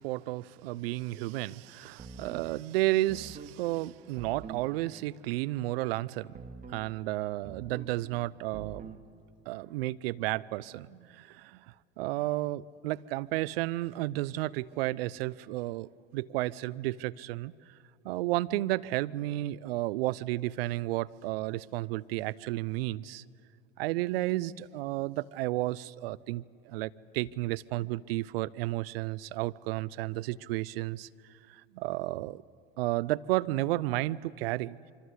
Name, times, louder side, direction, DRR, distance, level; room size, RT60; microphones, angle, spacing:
voice 1, 0.0-6.3 6.7-8.9 9.5-11.7 12.0-17.5 18.0-23.2 23.8-31.1 31.5-32.4 32.8-34.8, right 17 dB, 70° right, 19 dB, 0.6 m, -32 dB
sound 1, 2.0-2.5 3.1-3.6 4.2-4.7 6.3-6.9 7.4-8.0 8.5-9.0, right 5 dB, 25° right, 2.4 m, -45 dB
26.0 x 24.5 x 8.2 m, 2.2 s
hypercardioid pair, 70°, 30 cm